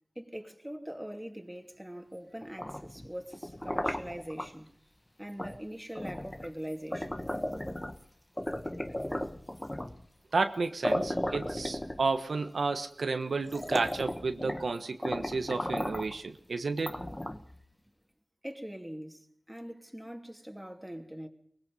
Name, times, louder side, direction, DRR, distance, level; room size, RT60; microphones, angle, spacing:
voice 1, 0.1-4.7 5.2-7.3 18.4-21.3, equal, 5° right, 2.9 m, -42 dB
sound 1, 2.4-4.5 5.4-5.6 5.9-8.0 8.4-10.0 10.5-10.6 10.8-12.3 13.0-13.1 13.4-14.7 15.0-16.2 16.8-17.6, left 1 dB, 15° left, 1.4 m, -35 dB
voice 2, 10.3-16.9, right 4 dB, 80° right, 1.3 m, -31 dB
24.0 x 20.0 x 5.5 m
wide cardioid pair, 55°, 0 cm